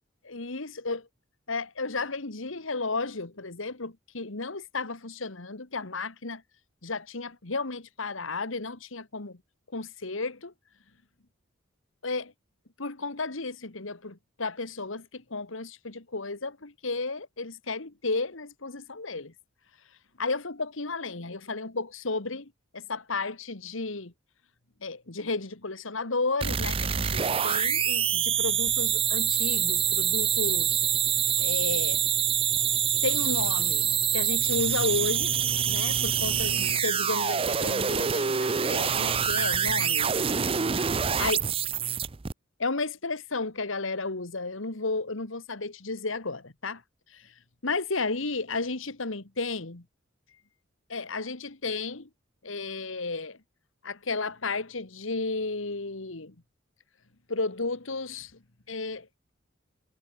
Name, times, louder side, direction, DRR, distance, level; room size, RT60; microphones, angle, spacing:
voice 1, 0.3-1.1 1.5-6.4 6.8-9.4 9.7-10.5 12.0-12.3 12.8-19.3 20.2-24.1 24.8-30.8 31.4-32.0 33.0-35.3 35.7-40.2 41.2-41.4 42.6-46.8 47.1-47.3 47.6-49.8 50.9-52.1 52.4-53.4 53.8-56.3 57.3-58.4 58.7-59.1, left 3 dB, 75° left, 1.8 m, -33 dB
sound 1, 26.4-42.3, right 8 dB, 25° right, 0.5 m, -26 dB
head